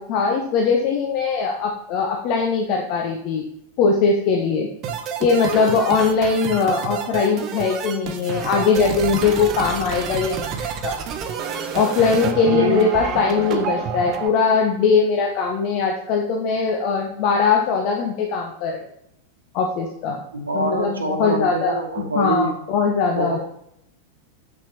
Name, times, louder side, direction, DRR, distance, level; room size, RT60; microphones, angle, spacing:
voice 1, 0.0-3.4 3.8-4.7 5.2-11.0 11.7-18.8 19.5-20.2 20.5-21.8 22.1-23.4, left 5 dB, 45° left, 2 dB, 0.9 m, -20 dB
sound 1, 4.8-14.3, right 7 dB, 35° right, 0.8 m, -29 dB
voice 2, 12.5-12.8 20.3-22.6 23.1-23.4, right 2 dB, 75° right, 5 dB, 1.0 m, -25 dB
7.7 x 5.9 x 3.0 m, 0.76 s
figure-of-eight pair, 90°, 0 cm